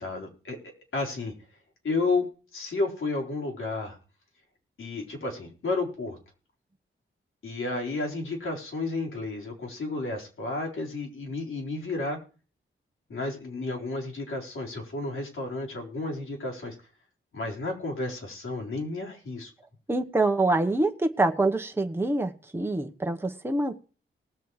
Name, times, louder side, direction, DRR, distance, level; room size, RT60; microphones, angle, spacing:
voice 1, 0.0-1.3 1.8-2.3 2.5-4.0 4.8-6.2 7.4-12.2 13.1-16.8 17.3-19.5, left 3 dB, 75° left, -1 dB, 4.3 m, -32 dB
voice 2, 19.9-23.9, right 2 dB, 10° right, 5 dB, 1.1 m, -26 dB
19.0 x 6.9 x 4.8 m, 0.37 s
cardioid pair, 80°, 21 cm